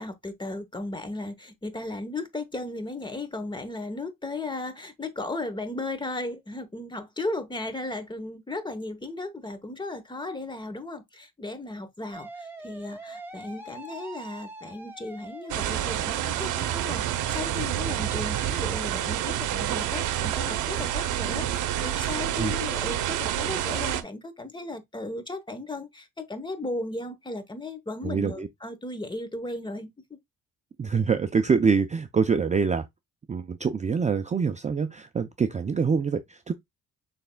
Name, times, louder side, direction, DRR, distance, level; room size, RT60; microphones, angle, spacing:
voice 1, 0.0-29.9, left 2 dB, 15° left, 1.0 m, -35 dB
sound 1, 12.1-16.2, right 2 dB, 5° right, 1.4 m, -43 dB
sound 2, 15.5-24.0, right 11 dB, 85° right, 0.7 m, -28 dB
voice 2, 28.0-28.5 30.8-32.9 33.3-36.5, right 5 dB, 25° right, 0.4 m, -25 dB
6.4 x 3.4 x 2.2 m
cardioid pair, 90°, 30 cm